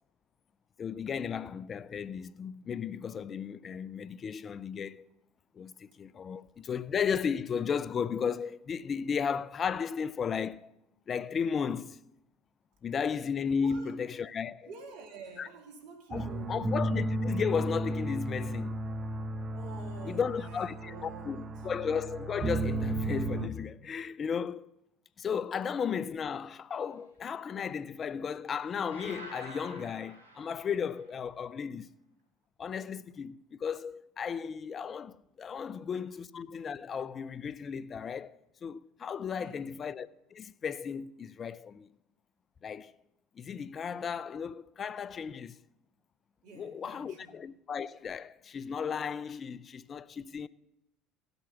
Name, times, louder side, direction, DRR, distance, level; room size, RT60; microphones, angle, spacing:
voice 1, 0.8-5.0 5.6-10.7 11.1-12.0 12.8-14.7 15.4-15.5 16.1-18.8 20.0-24.7 25.2-31.9 32.6-41.9 42.6-42.9 43.4-45.6 46.6-50.5, left 6 dB, 40° left, 0.5 m, -35 dB
voice 2, 13.6-13.9 14.6-16.6 19.5-21.7 39.3-39.7 46.4-47.4, right 4 dB, 65° right, 2.7 m, -49 dB
sound 1, 16.1-23.5, right 1 dB, 35° right, 1.1 m, -34 dB
sound 2, 28.9-31.1, right 1 dB, 90° right, 3.6 m, -49 dB
17.0 x 7.9 x 5.9 m
hypercardioid pair, 75°, 0 cm